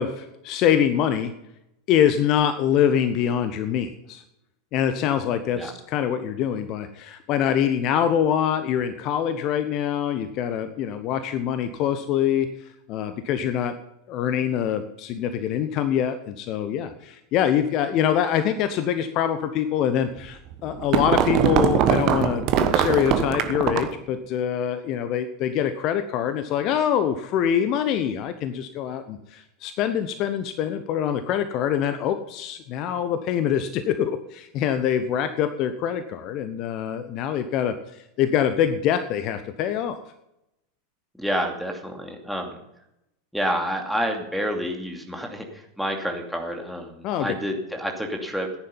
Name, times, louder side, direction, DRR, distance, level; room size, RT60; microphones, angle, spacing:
voice 1, 0.0-1.3 1.9-4.2 4.7-12.5 12.9-13.7 14.1-37.7 38.2-40.0 47.0-47.3, left 9 dB, 40° left, 10 dB, 1.0 m, -24 dB
sound 1, 20.3-24.0, right 8 dB, 40° right, 1.1 m, -22 dB
voice 2, 41.1-42.6 43.3-48.5, equal, ahead, 1 dB, 2.7 m, -29 dB
14.5 x 10.5 x 5.5 m, 0.84 s
figure-of-eight pair, 85°, 0 cm